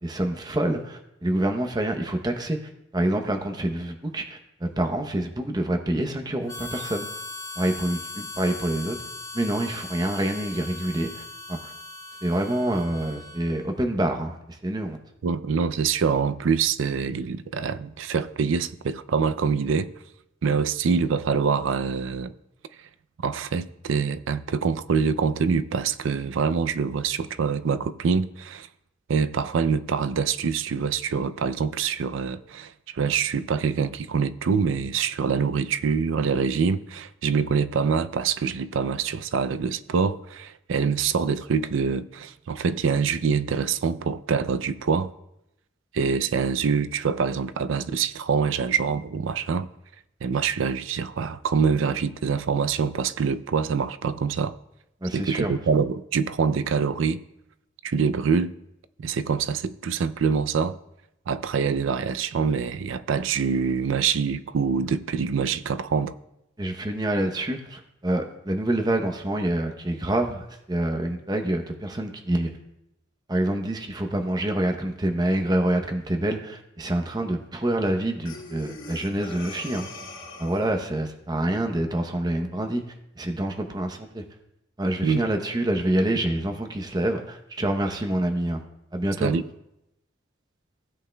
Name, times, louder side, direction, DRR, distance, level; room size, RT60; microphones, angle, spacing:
voice 1, 0.0-7.1 7.6-9.0 9.3-11.7 12.2-15.0 55.0-55.5 66.6-72.5 73.3-79.9 80.4-82.8 83.2-84.2 84.8-88.6 88.9-89.3, right 1 dB, 20° right, 0.7 m, -27 dB
Harmonica, 6.5-13.8, left 2 dB, 20° left, 0.9 m, -39 dB
voice 2, 15.2-19.9 20.4-22.3 23.2-28.7 29.1-45.1 45.9-49.7 50.2-54.5 55.1-57.2 57.8-58.5 59.0-60.8 61.3-66.1 85.0-85.2 89.2-89.4, right 6 dB, 80° right, 0.4 m, -25 dB
Breathing, 78.3-80.8, left 2 dB, 90° left, 2.5 m, -41 dB
16.0 x 8.2 x 2.2 m
head